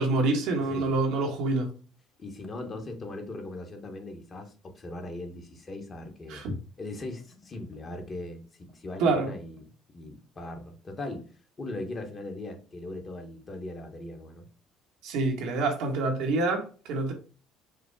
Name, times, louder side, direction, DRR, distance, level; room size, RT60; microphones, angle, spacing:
voice 1, 0.0-1.7 6.3-6.5 9.0-9.3 15.0-17.1, right 3 dB, 75° right, 1.2 m, -26 dB
voice 2, 0.6-0.9 2.2-6.4 6.8-9.7 9.9-11.3 11.6-14.5, left 2 dB, 35° left, 1.2 m, -39 dB
4.9 x 2.1 x 4.5 m
supercardioid pair, 100°, 0 cm